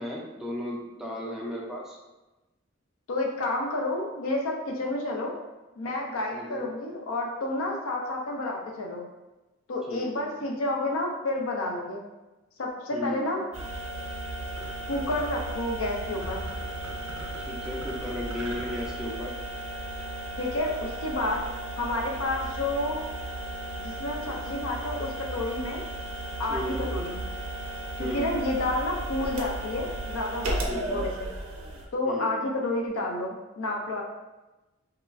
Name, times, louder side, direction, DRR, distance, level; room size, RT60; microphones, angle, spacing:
voice 1, 0.0-2.0 6.3-6.7 9.9-10.3 12.9-13.3 17.4-19.3 26.5-26.8 28.0-28.3 30.7-31.0 32.0-32.3, left 1 dB, ahead, -4 dB, 0.3 m, -35 dB
voice 2, 3.1-5.4 5.8-9.1 9.7-12.0 12.6-13.5 14.9-16.5 20.4-21.4 21.8-23.0 23.8-25.8 26.4-27.3 28.0-31.3 31.9-34.0, left 2 dB, 75° left, 0 dB, 0.5 m, -30 dB
sound 1, 13.5-31.9, right 1 dB, 80° right, 0.5 m, -35 dB
2.9 x 2.3 x 2.3 m, 1.1 s
head